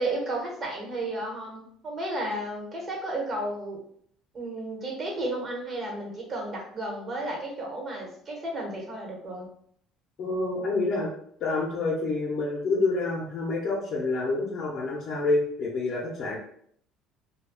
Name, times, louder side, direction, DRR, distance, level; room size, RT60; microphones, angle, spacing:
voice 1, 0.0-3.8 4.3-9.5, right 1 dB, 35° right, -1 dB, 1.2 m, -33 dB
voice 2, 10.2-11.1 11.4-16.4, left 3 dB, 55° left, -4 dB, 0.7 m, -27 dB
2.3 x 2.2 x 3.6 m, 0.65 s
cardioid pair, 100°, 0 cm